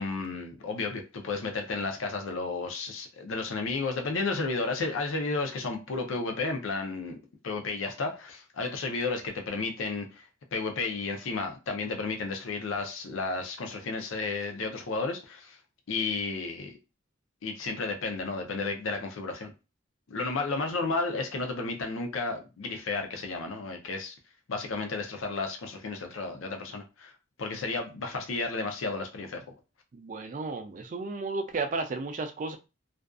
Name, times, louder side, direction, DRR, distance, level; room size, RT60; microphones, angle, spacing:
voice 1, 0.0-7.2 7.4-15.6 15.9-16.8 17.4-19.5 20.1-24.1 24.5-27.1 27.4-29.4, left 3 dB, 85° left, 0.5 m, -32 dB
voice 2, 29.9-32.6, right 3 dB, 40° right, 0.3 m, -33 dB
2.5 x 2.2 x 2.3 m
head